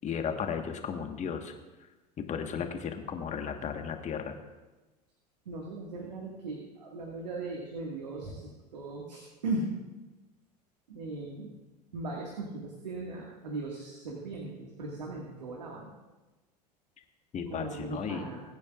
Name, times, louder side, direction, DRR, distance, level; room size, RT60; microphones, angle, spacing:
voice 1, 0.0-1.5 1.8-1.9 2.2-4.4 17.0-17.1 17.3-18.3, left 7 dB, 35° left, 5 dB, 1.5 m, -35 dB
voice 2, 5.5-9.7 10.9-11.5 11.9-15.9 17.5-18.4, right 2 dB, 80° right, -1 dB, 1.9 m, -38 dB
21.5 x 9.3 x 2.5 m, 1.1 s
hypercardioid pair, 80°, 21 cm